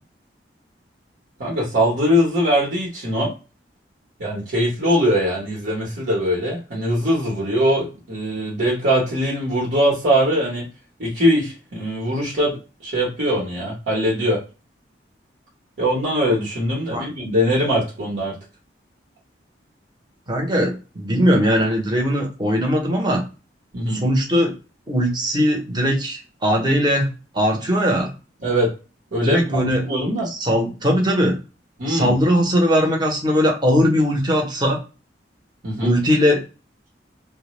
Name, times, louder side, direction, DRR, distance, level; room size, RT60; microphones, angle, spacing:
voice 1, 1.4-3.3 4.2-10.6 11.0-12.6 12.8-14.4 15.8-18.3 23.7-24.0 28.4-28.7 29.1-30.3 31.8-32.1 35.6-35.9, equal, 75° right, -4 dB, 0.9 m, -21 dB
voice 2, 20.3-23.2 23.9-24.5 24.9-27.1 27.3-28.1 29.2-29.8 30.3-31.3 31.9-34.8 35.8-36.4, equal, 25° right, 1 dB, 0.7 m, -19 dB
2.1 x 2.0 x 3.0 m, 0.32 s
head